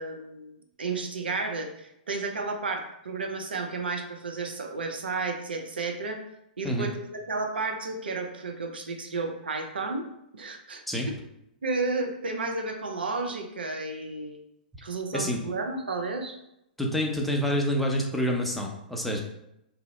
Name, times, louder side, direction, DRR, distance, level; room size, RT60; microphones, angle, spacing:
voice 1, 0.0-6.2 6.6-10.1 10.3-10.8 11.6-14.4 14.8-16.4, right 3 dB, 85° right, 4 dB, 0.5 m, -32 dB
voice 2, 16.8-19.2, equal, ahead, -1 dB, 0.5 m, -27 dB
2.8 x 2.0 x 3.7 m, 0.82 s
hypercardioid pair, 115°, 5 cm